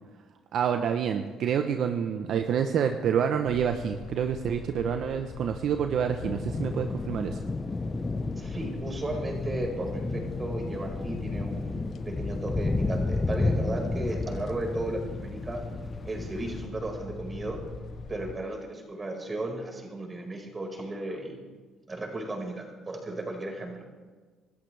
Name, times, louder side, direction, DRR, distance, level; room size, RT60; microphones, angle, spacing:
voice 1, 0.5-7.4, right 8 dB, 65° right, 6 dB, 0.9 m, -28 dB
sound 1, 3.4-18.4, left 5 dB, 55° left, 1.0 m, -42 dB
sound 2, 6.2-16.7, left 3 dB, 25° left, 0.9 m, -32 dB
voice 2, 8.4-15.6 16.0-17.6 18.1-21.4 21.9-23.8, right 2 dB, 25° right, 1 dB, 5.0 m, -35 dB
27.0 x 13.5 x 3.4 m, 1.4 s
supercardioid pair, 75°, 0 cm